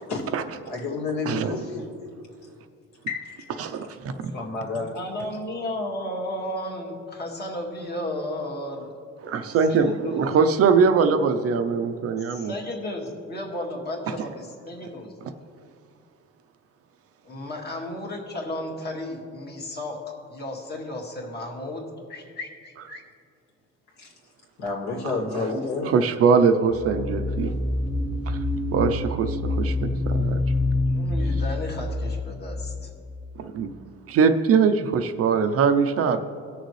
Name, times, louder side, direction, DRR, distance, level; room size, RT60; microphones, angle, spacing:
voice 1, 0.7-2.1 3.1-3.5 4.3-4.9 24.0-24.1 24.6-25.9, left 3 dB, 65° left, -2 dB, 2.4 m, -30 dB
voice 2, 3.6-4.0 4.2-4.3 9.2-12.5 25.9-27.5 28.3-28.4 28.7-30.4 33.4-33.7 34.1-36.2, right 5 dB, 50° right, 9 dB, 0.6 m, -22 dB
voice 3, 4.9-8.9 9.7-10.2 12.2-15.1 17.2-20.0 20.3-21.8 22.1-23.0 30.9-32.9, left 1 dB, 35° left, 0 dB, 1.9 m, -33 dB
sound 1, 26.7-33.3, left 2 dB, 5° right, 0.4 m, -27 dB
18.5 x 6.6 x 3.2 m, 2.4 s
cardioid pair, 140°, 30 cm